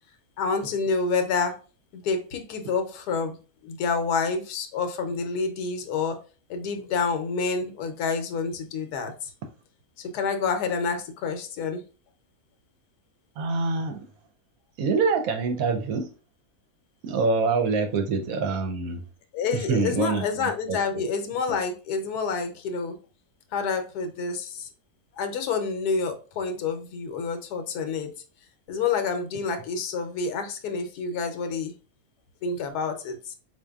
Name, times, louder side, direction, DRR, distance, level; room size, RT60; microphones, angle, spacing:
voice 1, 0.4-1.6 1.9-3.4 3.6-6.2 6.5-9.3 10.0-11.8 19.3-23.0 23.5-24.7 25.1-28.1 28.7-31.7 32.4-33.3, left 5 dB, 80° left, 1.1 m, -28 dB
voice 2, 13.4-14.1 14.8-16.1 17.0-19.0 19.5-20.8, right 4 dB, 70° right, 0.9 m, -25 dB
4.2 x 2.5 x 2.3 m
omnidirectional pair, 1.7 m